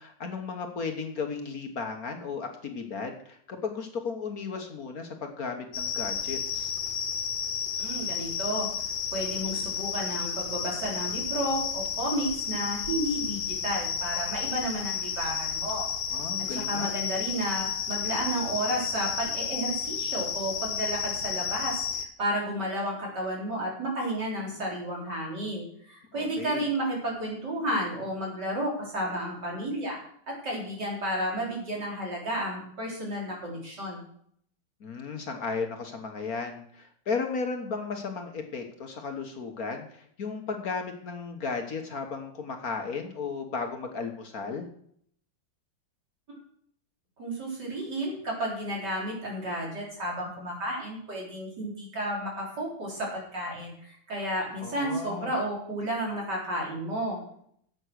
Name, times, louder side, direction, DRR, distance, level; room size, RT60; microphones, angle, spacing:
voice 1, 0.0-6.7 16.1-16.9 26.1-26.6 34.8-44.7 54.6-55.3, left 4 dB, 55° left, 4 dB, 1.6 m, -35 dB
sound 1, 5.7-22.1, left 7 dB, 80° left, 1.9 m, -32 dB
voice 2, 7.8-8.7 9.1-15.9 16.4-21.8 22.2-30.0 30.3-34.0 47.2-57.2, right 1 dB, 60° right, -2 dB, 4.4 m, -32 dB
10.5 x 8.1 x 6.4 m, 0.65 s
omnidirectional pair, 2.0 m